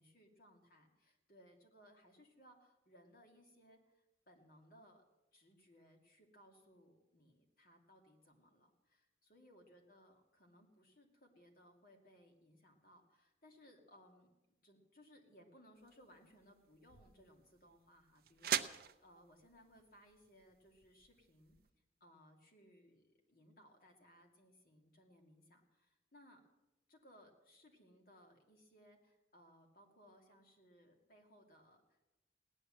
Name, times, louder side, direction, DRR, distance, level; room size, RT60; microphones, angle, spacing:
voice 1, 0.0-5.0 5.3-14.3 14.6-21.6 22.0-26.4 26.9-32.1, equal, 50° left, 2 dB, 2.4 m, -65 dB
sound 1, 15.8-21.7, right 9 dB, 55° right, 0.7 m, -45 dB
17.0 x 10.5 x 7.6 m, 1.0 s
head